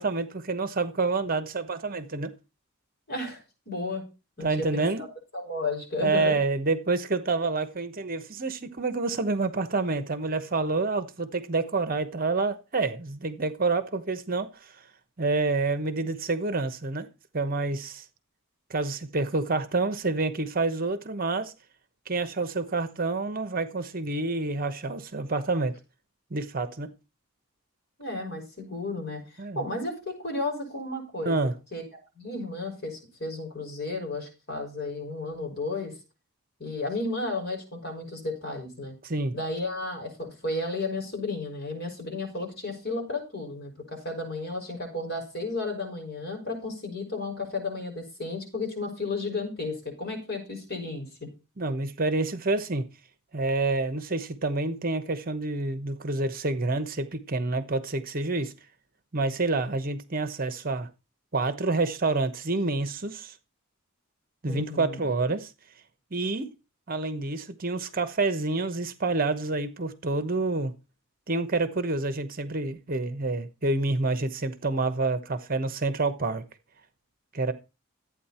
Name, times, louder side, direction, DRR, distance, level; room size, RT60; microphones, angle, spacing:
voice 1, 0.0-2.3 4.4-5.0 6.0-14.7 15.2-17.1 17.3-18.0 18.7-21.5 22.1-25.7 26.3-26.9 29.4-29.6 31.2-31.5 39.0-39.3 51.6-52.9 53.3-58.5 59.1-60.9 61.3-63.3 64.4-65.5 66.1-66.5 66.9-70.7 71.3-76.4 77.3-77.5, right 3 dB, 40° right, 1.0 m, -28 dB
voice 2, 3.1-4.0 4.4-4.9 5.3-6.4 28.0-29.2 29.5-31.4 31.7-31.8 32.2-35.9 36.6-38.9 39.3-51.3 64.5-65.0, left 2 dB, 50° left, 6.1 m, -33 dB
13.5 x 8.9 x 4.4 m
head